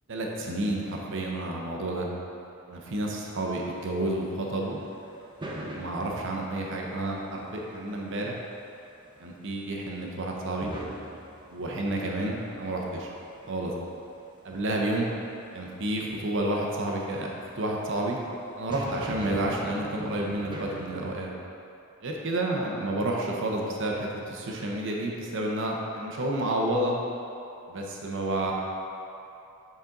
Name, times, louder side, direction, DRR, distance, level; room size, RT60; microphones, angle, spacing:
voice 1, 0.1-2.1 2.7-4.8 5.6-8.4 9.2-10.7 11.5-13.1 13.5-13.7 14.4-15.1 15.5-17.3 17.6-18.2 18.6-21.3 22.0-26.9 27.7-28.5, right 1 dB, 60° right, -1 dB, 0.8 m, -30 dB
sound 1, 3.2-21.1, right 1 dB, 20° right, 0.8 m, -44 dB
8.2 x 4.3 x 3.8 m, 2.7 s
head